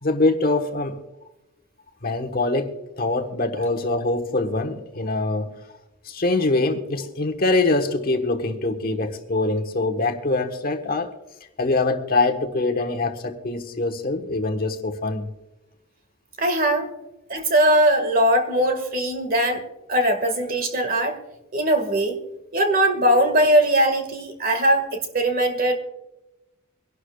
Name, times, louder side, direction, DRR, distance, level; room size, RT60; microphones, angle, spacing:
voice 1, 0.0-1.0 2.0-5.6 6.1-11.1 11.6-15.3, left 2 dB, 45° left, 5 dB, 1.2 m, -24 dB
voice 2, 16.4-16.9 17.3-19.6 19.9-21.2 21.5-22.2 22.5-25.8, right 1 dB, 45° right, 6 dB, 1.8 m, -20 dB
24.5 x 11.5 x 2.3 m, 0.98 s
head